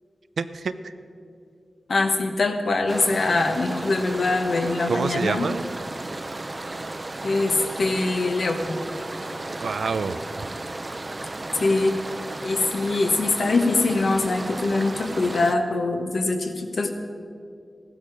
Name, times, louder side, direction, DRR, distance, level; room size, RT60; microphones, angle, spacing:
voice 1, 0.4-0.9 4.9-5.7 9.5-10.2, right 5 dB, 85° right, 11 dB, 0.6 m, -27 dB
voice 2, 1.9-5.5 7.2-8.8 11.6-11.9 12.4-16.9, left 3 dB, 70° left, 5 dB, 1.3 m, -23 dB
sound 1, 2.9-15.6, right 2 dB, 30° right, 0.6 m, -34 dB
16.0 x 12.5 x 5.0 m, 2.4 s
wide cardioid pair, 95°, 0 cm